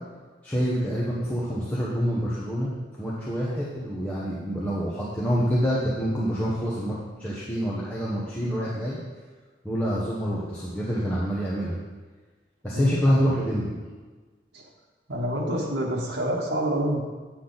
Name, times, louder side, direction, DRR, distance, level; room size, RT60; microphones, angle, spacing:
voice 1, 0.4-2.7 3.0-9.0 9.6-11.8 12.6-13.8, equal, 10° left, -8 dB, 0.9 m, -26 dB
voice 2, 15.1-17.0, right 1 dB, 80° right, -2 dB, 1.2 m, -27 dB
8.4 x 5.9 x 3.9 m, 1.4 s
head